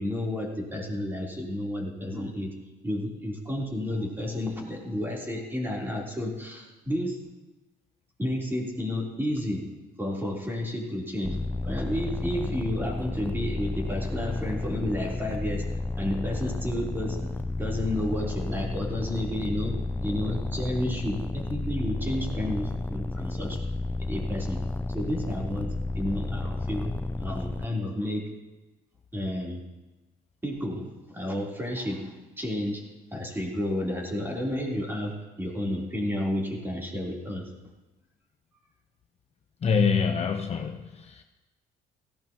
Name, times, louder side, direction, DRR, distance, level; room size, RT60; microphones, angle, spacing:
voice 1, 0.0-7.3 8.2-9.7 10.0-17.3 17.6-23.6 24.1-24.7 24.9-26.9 27.2-28.4 29.1-29.6 30.4-37.5, left 1 dB, 10° right, -3 dB, 3.6 m, -31 dB
sound 1, 11.2-27.7, left 2 dB, 10° left, 0.4 m, -32 dB
voice 2, 39.6-41.2, left 5 dB, 40° left, 4 dB, 0.8 m, -25 dB
17.5 x 15.5 x 3.0 m, 1.1 s
cardioid pair, 110°, 17 cm